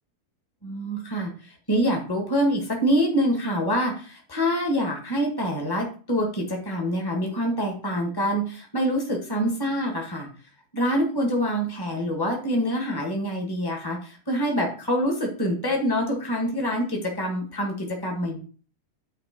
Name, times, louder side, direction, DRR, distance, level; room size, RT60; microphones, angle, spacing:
voice 1, 0.6-10.3 10.7-18.4, equal, 15° left, 1 dB, 1.8 m, -26 dB
9.4 x 3.6 x 5.3 m, 0.40 s
omnidirectional pair, 1.7 m